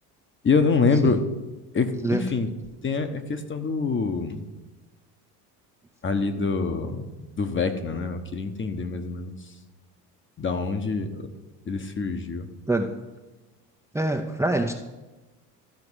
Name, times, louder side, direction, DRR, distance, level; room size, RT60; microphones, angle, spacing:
voice 1, 0.4-1.3 1.7-2.5 2.8-4.4 6.0-7.1 7.4-9.4 10.4-11.3 11.7-12.5, left 4 dB, 25° left, 8 dB, 1.1 m, -25 dB
voice 2, 13.9-14.7, right 2 dB, 5° right, 3 dB, 0.7 m, -24 dB
13.0 x 4.8 x 6.4 m, 1.2 s
supercardioid pair, 85°, 47 cm